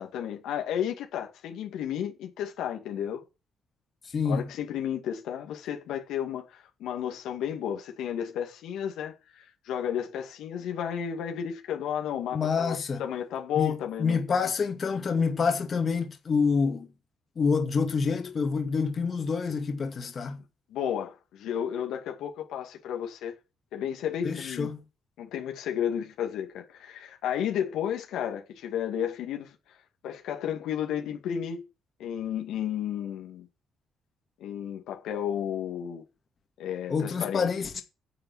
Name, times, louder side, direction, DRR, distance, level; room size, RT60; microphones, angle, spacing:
voice 1, 0.0-3.2 4.2-14.5 20.7-23.3 23.7-24.7 25.2-29.5 30.0-31.7 32.0-33.5 34.4-36.0 36.6-37.5, left 9 dB, 85° left, 2.3 m, -32 dB
voice 2, 4.1-4.5 12.3-13.0 13.6-16.9 17.4-20.4 24.2-24.8 36.9-37.8, left 5 dB, 45° left, 2.3 m, -27 dB
10.5 x 7.0 x 7.3 m
cardioid pair, 90°, 0 cm